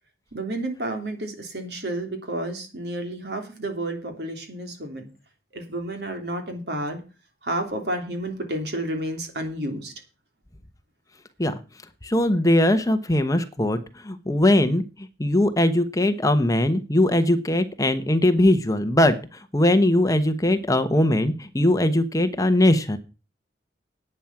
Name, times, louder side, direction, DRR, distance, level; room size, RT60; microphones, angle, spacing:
voice 1, 0.3-5.1 5.5-7.0 7.4-9.9, right 1 dB, 65° right, 5 dB, 3.1 m, -31 dB
voice 2, 12.0-13.8 14.0-23.0, left 1 dB, 20° left, 9 dB, 1.0 m, -20 dB
11.0 x 8.9 x 6.0 m, 0.32 s
head